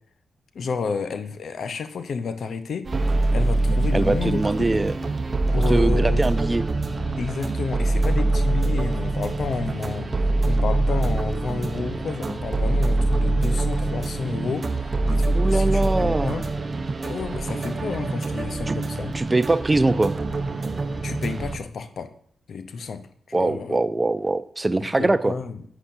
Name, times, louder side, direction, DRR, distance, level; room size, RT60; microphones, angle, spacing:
voice 1, 0.5-2.9 3.3-4.5 5.5-6.2 7.2-16.5 17.0-19.1 21.0-22.1 22.5-23.8 24.8-25.6, left 5 dB, 70° left, 11 dB, 0.7 m, -31 dB
sound 1, 2.9-21.6, right 2 dB, 45° right, 0.8 m, -24 dB
voice 2, 3.9-4.9 5.7-6.6 15.4-16.5 18.7-18.8 19.1-20.1 23.3-25.4, right 2 dB, 25° right, 14 dB, 0.5 m, -22 dB
10.0 x 8.1 x 2.7 m, 0.66 s
cardioid pair, 55°, 0 cm